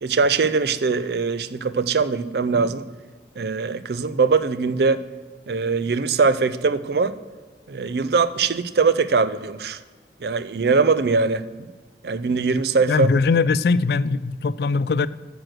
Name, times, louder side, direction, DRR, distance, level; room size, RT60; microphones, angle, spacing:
voice 1, 0.0-2.9 3.4-5.0 5.5-7.2 7.7-9.8 10.2-11.4 12.0-13.1, right 4 dB, 65° right, 14 dB, 0.5 m, -21 dB
voice 2, 12.8-15.1, left 4 dB, 60° left, 18 dB, 0.3 m, -20 dB
8.9 x 6.3 x 6.3 m, 1.4 s
head